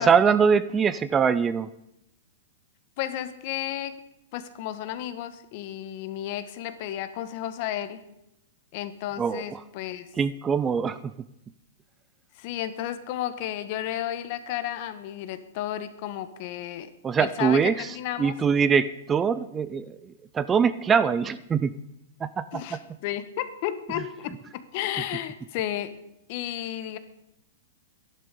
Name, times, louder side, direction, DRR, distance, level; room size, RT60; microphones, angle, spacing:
voice 1, 0.0-1.7 9.2-9.6 10.2-11.0 17.0-17.9 18.2-21.7 22.2-22.8, right 6 dB, 15° right, 15 dB, 0.5 m, -23 dB
voice 2, 3.0-4.0 4.3-8.0 8.7-10.1 12.3-16.9 17.2-18.4 22.5-26.0 26.3-27.0, left 12 dB, 45° left, 11 dB, 1.3 m, -33 dB
12.0 x 11.0 x 6.6 m, 0.83 s
hypercardioid pair, 140°, 0 cm